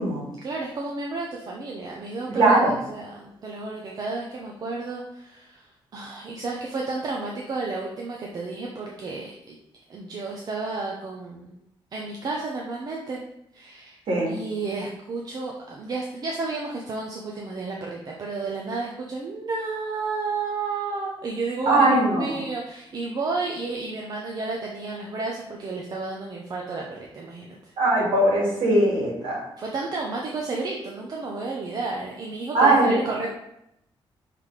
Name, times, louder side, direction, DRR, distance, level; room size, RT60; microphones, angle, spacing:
voice 1, 0.4-5.7 5.9-9.6 9.9-11.6 11.9-13.2 13.5-14.0 14.3-27.7 29.6-33.3, right 3 dB, 45° right, -1 dB, 0.7 m, -32 dB
voice 2, 2.3-2.7 14.1-14.3 21.7-22.4 27.8-29.4 32.5-32.9, right 2 dB, 70° right, -3 dB, 2.4 m, -20 dB
5.8 x 3.4 x 4.8 m, 0.82 s
wide cardioid pair, 160°, 9 cm